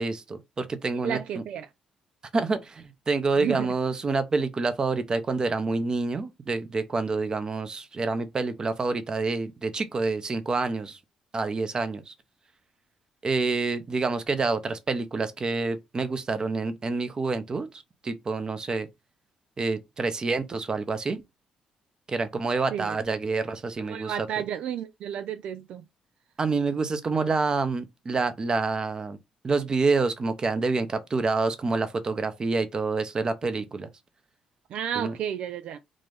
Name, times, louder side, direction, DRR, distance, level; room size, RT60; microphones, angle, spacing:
voice 1, 0.0-1.2 2.3-11.0 11.3-12.1 13.2-17.7 18.0-18.9 19.6-21.2 22.1-24.1 26.4-29.2 29.4-33.9 35.0-35.2, right 3 dB, 40° right, 0.8 m, -27 dB
voice 2, 0.9-1.7 3.4-3.7 22.7-23.0 23.8-25.8 34.7-35.8, right 9 dB, 75° right, 0.3 m, -32 dB
3.8 x 2.5 x 3.3 m
supercardioid pair, 60°, 2 cm